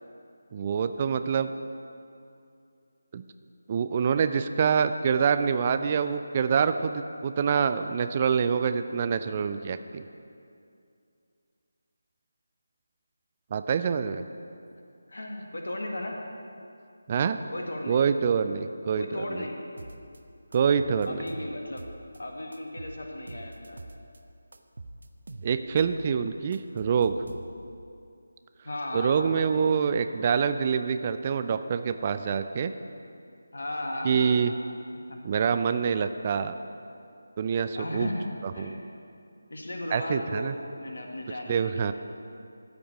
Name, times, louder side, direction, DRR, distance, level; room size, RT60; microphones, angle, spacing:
voice 1, 0.5-1.5 3.1-3.2 3.7-10.0 13.5-14.2 17.1-17.4 17.9-19.4 20.5-21.2 25.4-27.2 28.9-32.7 34.0-34.5 35.2-36.5 37.4-38.1 38.6-38.8 39.9-40.5 41.5-41.9, right 6 dB, 25° right, 10 dB, 0.3 m, -26 dB
voice 2, 15.1-16.2 17.5-18.0 19.0-19.6 21.0-21.8 22.2-23.9 28.6-29.6 33.5-34.5 35.1-35.2 37.7-38.3 38.5-38.9 39.5-41.9, left 1 dB, 60° left, 1 dB, 1.6 m, -35 dB
sound 1, 19.8-20.2 20.5-22.2 22.5-24.2 24.5-26.0 26.3-27.8, right 2 dB, 55° right, 0.7 m, -44 dB
13.0 x 5.2 x 7.2 m, 2.5 s
figure-of-eight pair, 155°, 0 cm